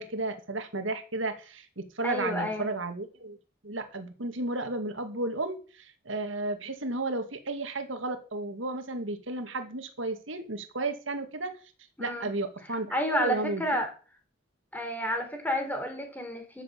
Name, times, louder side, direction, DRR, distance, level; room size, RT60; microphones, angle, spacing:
voice 1, 0.0-3.4 3.6-11.5 12.0-13.6, right 2 dB, 80° right, 7 dB, 2.1 m, -33 dB
voice 2, 2.0-2.7 12.0-12.3 12.9-13.9 14.7-16.6, equal, 10° left, 4 dB, 3.5 m, -30 dB
13.5 x 6.4 x 7.5 m, 0.36 s
head